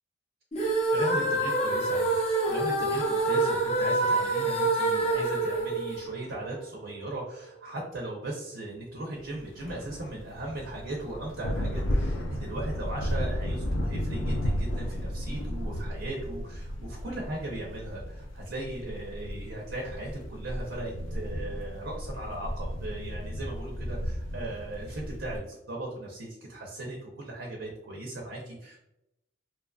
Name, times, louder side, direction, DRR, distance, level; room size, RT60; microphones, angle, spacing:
sound 1, 0.5-6.7, right 2 dB, 35° left, 0.6 m, -26 dB
voice 1, 0.9-28.8, right 1 dB, 65° right, -1 dB, 0.5 m, -38 dB
sound 2, 9.4-25.4, equal, 80° left, 0.4 m, -34 dB
2.8 x 2.4 x 2.2 m, 0.85 s
head